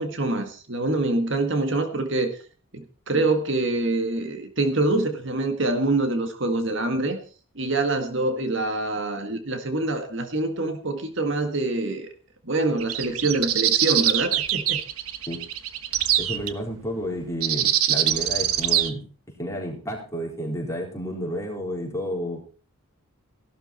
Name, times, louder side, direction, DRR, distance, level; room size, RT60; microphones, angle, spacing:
voice 1, 0.0-2.4 2.7-7.2 7.6-12.1 12.4-14.8, right 2 dB, 55° right, 6 dB, 1.8 m, -25 dB
sound 1, 12.8-16.5 17.4-18.9, right 11 dB, 85° right, 1.3 m, -23 dB
voice 2, 16.2-19.0 19.4-22.4, equal, 15° left, -1 dB, 4.3 m, -31 dB
16.5 x 12.0 x 4.4 m, 0.38 s
head